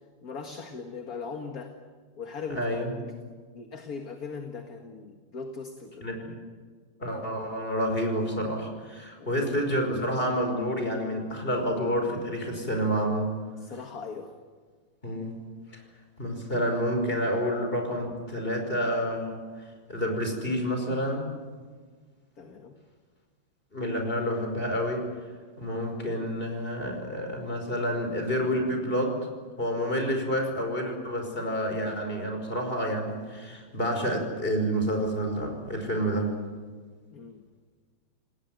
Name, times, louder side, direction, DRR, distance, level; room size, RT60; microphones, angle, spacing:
voice 1, 0.2-1.8 2.2-2.7 3.0-3.1 3.5-6.1 9.2-9.4 13.6-14.3 22.4-22.7 37.1-37.4, left 5 dB, 45° left, 4 dB, 2.1 m, -39 dB
voice 2, 2.6-2.9 6.0-6.3 7.0-13.3 15.0-15.4 15.7-15.8 16.2-19.4 19.9-21.3 23.7-25.1 25.6-29.2 29.6-36.3, equal, 25° left, 4 dB, 5.5 m, -29 dB
28.5 x 19.0 x 9.4 m, 1.5 s
omnidirectional pair, 2.3 m